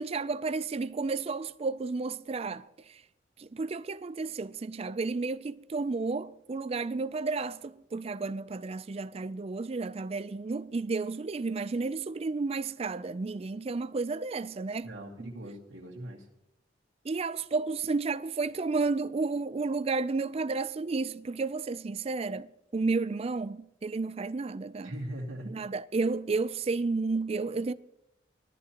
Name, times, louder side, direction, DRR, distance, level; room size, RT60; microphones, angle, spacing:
voice 1, 0.0-3.0 3.4-14.9 15.2-15.3 17.0-24.9 25.4-27.7, right 3 dB, 30° right, 0.4 m, -32 dB
voice 2, 14.8-16.3 24.8-25.6, right 1 dB, 75° right, 2.4 m, -40 dB
19.0 x 13.5 x 2.9 m
head